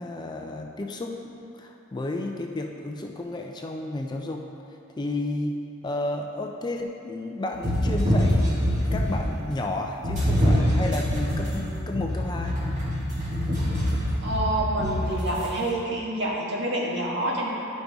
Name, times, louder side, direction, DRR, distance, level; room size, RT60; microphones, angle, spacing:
voice 1, 0.0-4.5 5.0-5.6 5.8-12.6, left 2 dB, 20° left, 2 dB, 0.4 m, -32 dB
sound 1, 7.5-9.3 10.0-15.5, equal, 35° right, 1.8 m, -24 dB
voice 2, 14.2-17.5, right 1 dB, 55° right, -4 dB, 1.4 m, -28 dB
10.5 x 5.2 x 3.5 m, 2.7 s
head